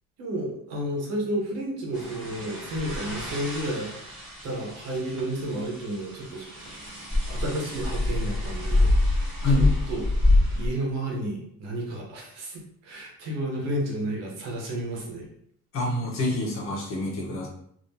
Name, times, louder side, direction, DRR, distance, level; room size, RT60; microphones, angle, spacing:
voice 1, 0.2-3.9 4.4-6.9 7.3-15.3, right 1 dB, 60° right, -1 dB, 1.1 m, -32 dB
sound 1, 1.9-10.7, left 2 dB, 5° right, 1.5 m, -26 dB
voice 2, 15.7-17.5, left 2 dB, 45° left, -3 dB, 1.2 m, -26 dB
3.6 x 2.8 x 2.8 m, 0.71 s
cardioid pair, 170°, 29 cm